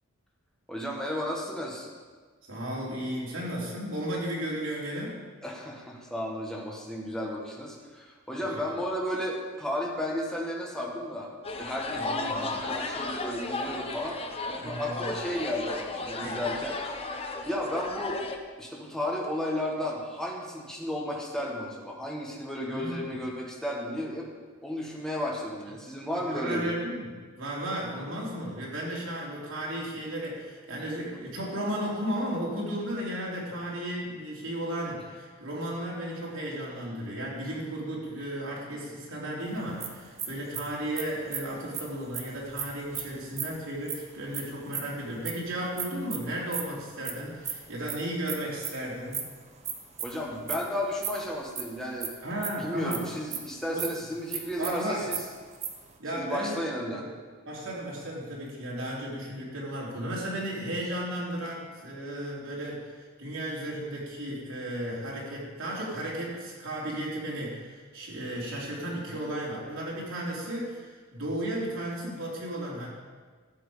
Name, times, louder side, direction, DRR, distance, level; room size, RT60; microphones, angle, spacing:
voice 1, 0.7-1.9 5.4-11.3 11.6-16.8 17.5-18.2 18.6-24.3 24.6-26.7 50.0-52.1 52.6-55.2 56.2-57.0 69.1-69.2, left 1 dB, 5° left, -2 dB, 1.7 m, -33 dB
voice 2, 2.5-5.2 8.4-8.6 11.9-12.6 14.6-15.1 16.2-16.4 22.7-23.1 26.1-49.3 52.2-53.0 53.7-53.9 54.6-55.1 56.0-56.6 56.9-57.1 57.5-72.9, right 1 dB, 75° right, -4 dB, 3.2 m, -34 dB
sound 1, 11.4-18.4, left 3 dB, 30° left, 0.9 m, -34 dB
sound 2, 39.5-45.3 45.8-53.0 53.3-53.4 53.7-53.9 54.1-55.9, right 8 dB, 35° right, 1.1 m, -36 dB
12.5 x 7.8 x 5.1 m, 1.5 s
head